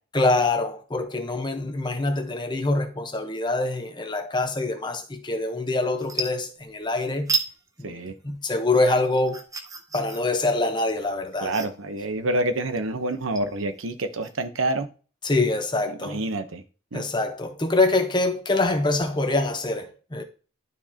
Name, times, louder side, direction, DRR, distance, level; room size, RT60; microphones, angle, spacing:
voice 1, 0.1-7.3 7.8-9.5 9.9-11.5 15.2-16.2 16.9-20.2, left 2 dB, 20° left, 0.9 m, -25 dB
sound 1, 5.4-5.6 5.9-6.9 7.3-7.5 7.9-14.4, right 4 dB, 15° right, 0.7 m, -33 dB
voice 2, 7.8-8.1 11.4-14.9 16.0-16.6 16.9-17.1, right 1 dB, 75° right, 0.9 m, -27 dB
12.0 x 4.6 x 2.9 m
head